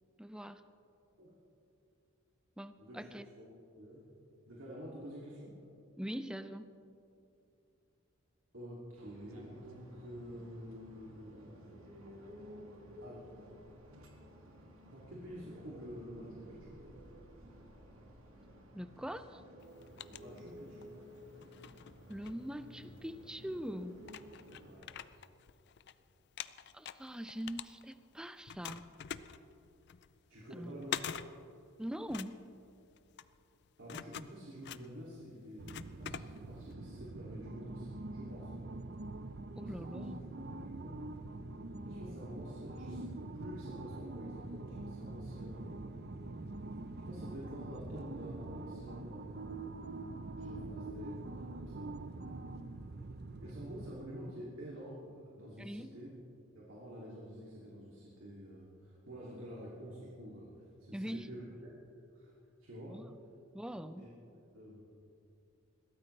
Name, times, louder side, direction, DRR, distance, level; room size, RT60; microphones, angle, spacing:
voice 1, 0.2-0.6 2.6-3.3 6.0-6.7 18.7-19.4 22.1-24.0 26.7-28.9 30.5-30.8 31.8-32.4 39.6-40.2 55.6-56.0 60.9-61.3 62.9-63.1 63.5-64.1, equal, 5° right, 10 dB, 0.4 m, -42 dB
voice 2, 2.8-3.5 3.8-4.1 4.5-5.6 8.5-11.5 13.0-13.3 14.9-16.8 20.1-21.0 24.6-24.9 30.3-31.5 33.8-38.5 39.6-40.1 40.5-41.0 41.8-45.8 47.1-49.9 50.4-52.0 53.4-56.1 56.5-61.8 62.1-62.3 62.6-63.0 64.0-64.1 64.5-64.8, equal, 70° right, -6 dB, 2.6 m, -49 dB
sound 1, 8.9-24.7, equal, 85° right, 2.0 m, -54 dB
sound 2, 19.6-20.9 21.4-23.1 23.7-23.8 24.0-25.9 26.2-28.1 28.5-36.7, left 8 dB, 55° left, 0.4 m, -46 dB
sound 3, 35.6-53.9, right 2 dB, 50° right, 0.6 m, -44 dB
22.0 x 16.0 x 3.3 m, 2.7 s
head